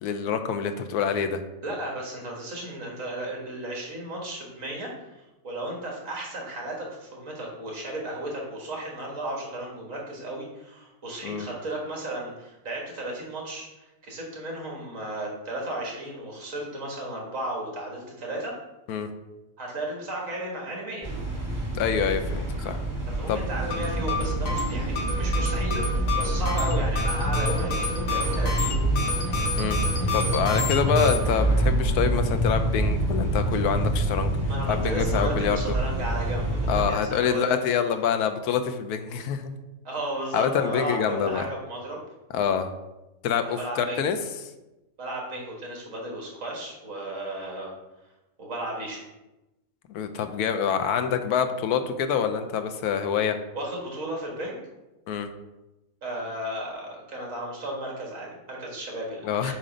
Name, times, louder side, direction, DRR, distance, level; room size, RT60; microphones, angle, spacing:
voice 1, 0.0-1.4 11.2-11.5 18.9-19.1 21.7-22.8 23.3-23.4 29.6-29.8 30.1-34.3 34.7-35.6 36.7-39.5 40.3-41.5 42.3-42.7 43.2-44.2 49.9-53.4 55.1-55.3 59.2-59.5, left 7 dB, 85° left, 8 dB, 1.1 m, -26 dB
voice 2, 1.6-13.7 14.0-18.5 19.6-21.1 23.2-29.1 34.5-37.6 39.8-42.0 43.4-44.0 45.0-47.7 48.4-49.0 53.5-54.6 56.0-59.5, right 1 dB, 60° right, -2 dB, 1.8 m, -34 dB
sound 1, 21.0-36.8, right 1 dB, 20° right, 1.7 m, -26 dB
sound 2, 23.7-31.2, left 3 dB, 60° left, 1.3 m, -30 dB
7.4 x 2.7 x 5.0 m, 1.0 s
omnidirectional pair, 1.6 m